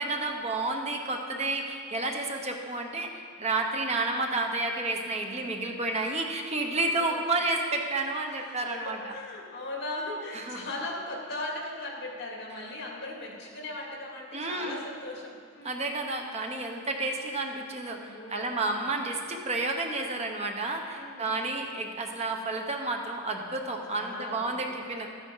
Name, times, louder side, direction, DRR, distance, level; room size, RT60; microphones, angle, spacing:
voice 1, 0.0-9.1 10.3-10.6 14.3-14.8 15.6-25.1, right 2 dB, 35° right, 3 dB, 0.9 m, -31 dB
voice 2, 6.7-7.2 8.7-15.9 18.0-18.5 20.9-21.5 23.9-24.7, left 2 dB, 60° left, -2 dB, 2.4 m, -38 dB
12.5 x 10.5 x 3.8 m, 2.2 s
head